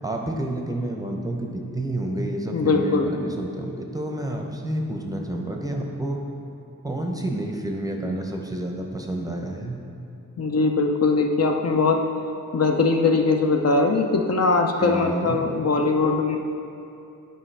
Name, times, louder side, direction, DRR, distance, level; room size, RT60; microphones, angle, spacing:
voice 1, 0.0-6.2 6.8-9.8 14.8-15.4, right 1 dB, 10° right, 1 dB, 0.7 m, -29 dB
voice 2, 2.5-3.1 10.4-12.0 12.5-16.4, left 3 dB, 50° left, 3 dB, 0.6 m, -21 dB
10.0 x 5.2 x 3.3 m, 2.7 s
wide cardioid pair, 105°, 34 cm